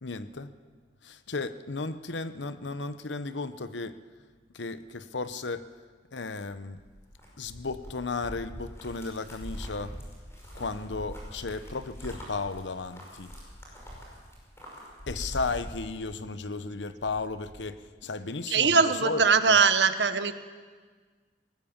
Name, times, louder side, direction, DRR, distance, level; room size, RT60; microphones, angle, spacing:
voice 1, 0.0-0.5 1.0-4.0 4.5-5.7 6.1-6.8 7.4-10.0 10.5-13.3 15.1-19.6, left 3 dB, 85° left, 12 dB, 0.9 m, -34 dB
sound 1, 6.5-16.4 16.7-17.7, equal, 15° left, 5.4 m, -43 dB
voice 2, 18.5-20.3, right 5 dB, 75° right, 10 dB, 1.1 m, -21 dB
20.0 x 18.0 x 7.3 m, 1.5 s
head